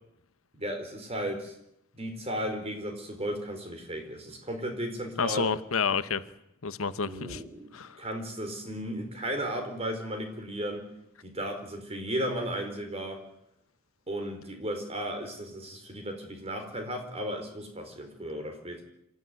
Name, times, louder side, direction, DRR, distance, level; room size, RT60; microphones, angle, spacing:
voice 1, 0.5-1.5 1.9-5.5 7.0-10.8 11.2-13.2 14.1-18.8, equal, 30° right, 4.5 m, -35 dB
voice 2, 5.2-6.2 6.6-7.4 7.7-8.0, left 5 dB, 75° left, 1.0 m, -29 dB
26.0 x 14.0 x 9.6 m
head